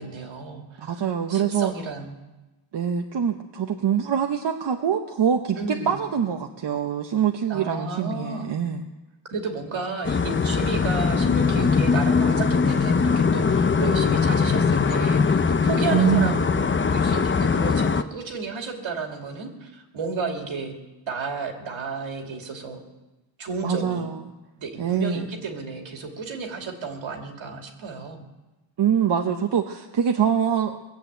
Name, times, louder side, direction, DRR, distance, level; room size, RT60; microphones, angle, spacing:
voice 1, 0.0-1.0 1.3-2.1 5.6-6.0 7.5-8.5 9.3-16.7 16.9-20.8 21.1-22.8 23.4-24.1 24.6-28.2, right 4 dB, 80° right, 2 dB, 2.7 m, -32 dB
voice 2, 0.8-1.7 2.7-5.6 5.9-8.8 15.9-16.5 23.6-24.2 24.8-25.3 28.8-30.8, right 8 dB, 60° right, 4 dB, 1.0 m, -24 dB
sound 1, 10.0-18.0, left 5 dB, 25° left, 0.6 m, -21 dB
20.5 x 8.4 x 8.0 m, 1.1 s
wide cardioid pair, 120°, 47 cm